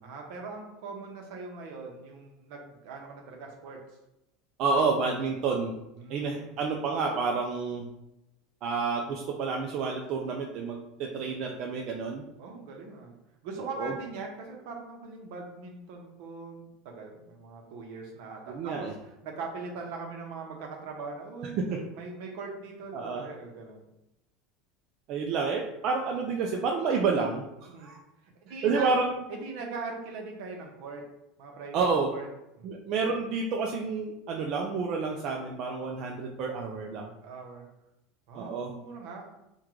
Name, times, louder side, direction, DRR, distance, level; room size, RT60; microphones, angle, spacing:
voice 1, 0.0-3.9 6.0-6.6 12.4-13.1 13.4-18.9 19.2-21.7 21.9-23.8 27.7-27.9 28.5-28.9 29.3-31.0 31.4-32.3 32.6-32.7 37.2-37.7 38.3-39.3, right 4 dB, 70° right, 1 dB, 0.8 m, -41 dB
voice 2, 4.6-5.7 6.1-7.9 8.6-12.2 13.6-13.9 18.5-18.9 21.7-21.8 22.9-23.2 25.1-28.0 28.6-29.2 31.7-32.1 32.6-37.1 38.3-38.7, right 4 dB, 50° right, 0 dB, 0.4 m, -29 dB
3.6 x 2.3 x 3.0 m, 0.89 s
supercardioid pair, 120°, 0 cm